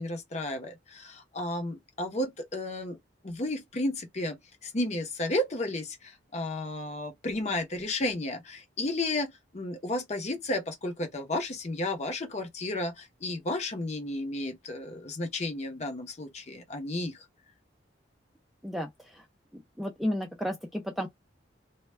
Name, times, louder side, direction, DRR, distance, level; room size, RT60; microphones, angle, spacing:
voice 1, 0.0-3.0 3.2-4.4 4.6-17.2, left 1 dB, 35° left, 0.7 m, -33 dB
voice 2, 18.6-19.2 19.8-21.1, equal, ahead, 0.4 m, -32 dB
2.2 x 2.1 x 3.2 m
head